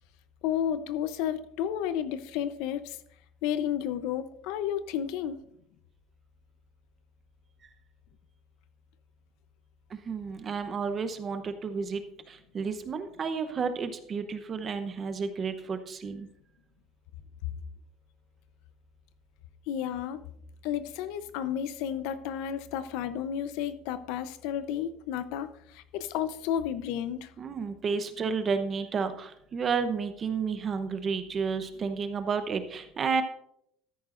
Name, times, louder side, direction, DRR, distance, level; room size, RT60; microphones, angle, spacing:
voice 1, 0.4-3.0 3.4-5.4 19.7-20.2 20.6-27.3, left 9 dB, 80° left, 12 dB, 0.7 m, -32 dB
voice 2, 9.9-16.3 27.4-33.2, right 5 dB, 30° right, 10 dB, 0.8 m, -31 dB
13.5 x 10.0 x 2.6 m, 0.72 s
cardioid pair, 155°, 0 cm